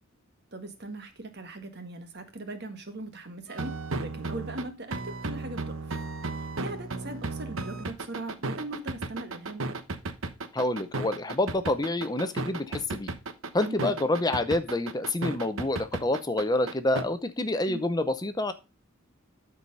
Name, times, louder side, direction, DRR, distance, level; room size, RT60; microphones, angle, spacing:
voice 1, 0.5-5.9 6.3-9.6 13.6-13.9 17.7-17.8, right 2 dB, 50° right, 7 dB, 1.7 m, -40 dB
sound 1, 3.5-17.0, right 3 dB, 75° right, 1.1 m, -34 dB
voice 2, 10.5-13.1 13.5-18.5, left 2 dB, 20° left, 10 dB, 0.6 m, -27 dB
12.5 x 4.8 x 5.3 m, 0.29 s
head